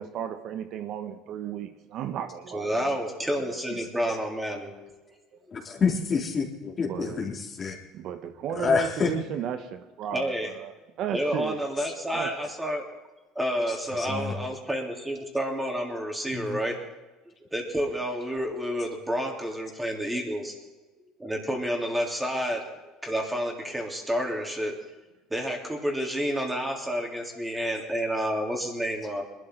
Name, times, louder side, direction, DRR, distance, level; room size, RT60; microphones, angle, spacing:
voice 1, 0.0-2.9 3.7-3.8 6.8-7.3 7.9-11.6 12.1-12.3, right 9 dB, 60° right, 1.1 m, -34 dB
voice 2, 2.5-4.7 5.1-5.2 5.5-5.6 10.1-10.5 11.1-12.9 13.3-16.8 17.5-20.5 21.2-22.6 23.0-24.7 25.3-29.2, equal, 10° right, 3.5 m, -29 dB
voice 3, 5.5-7.7 8.6-9.1 14.0-14.3 16.3-16.6, left 5 dB, 35° left, 3.3 m, -27 dB
21.0 x 12.5 x 4.0 m
supercardioid pair, 90°, 0 cm